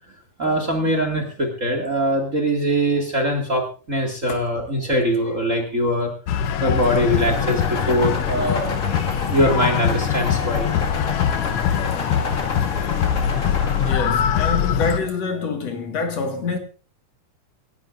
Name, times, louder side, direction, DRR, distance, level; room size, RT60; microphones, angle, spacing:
voice 1, 0.4-6.1 6.6-8.8 9.3-10.8 12.1-12.3 13.6-13.8, equal, 30° right, 2.0 m, -22 dB
sound 1, 6.3-15.0, left 9 dB, 80° left, 1.3 m, -23 dB
asphalt shredder working, 6.7-13.9, left 3 dB, 30° left, 1.9 m, -30 dB
voice 2, 13.8-16.6, left 4 dB, 60° left, 2.7 m, -26 dB
26.5 x 12.0 x 2.5 m
omnidirectional pair, 3.6 m